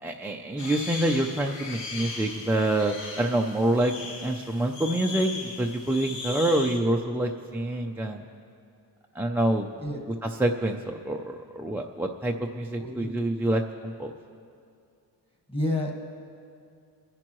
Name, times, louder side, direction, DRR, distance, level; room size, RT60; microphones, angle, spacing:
voice 1, 0.0-3.9 4.2-8.2 9.1-9.7 10.4-14.1, right 1 dB, 5° right, 0 dB, 0.3 m, -26 dB
sound 1, 0.6-6.8, left 3 dB, 80° left, 2.0 m, -38 dB
voice 2, 12.8-13.1 15.5-15.9, left 1 dB, 10° left, 2 dB, 1.4 m, -29 dB
26.5 x 10.5 x 3.0 m, 2.5 s
cardioid pair, 150°, 43 cm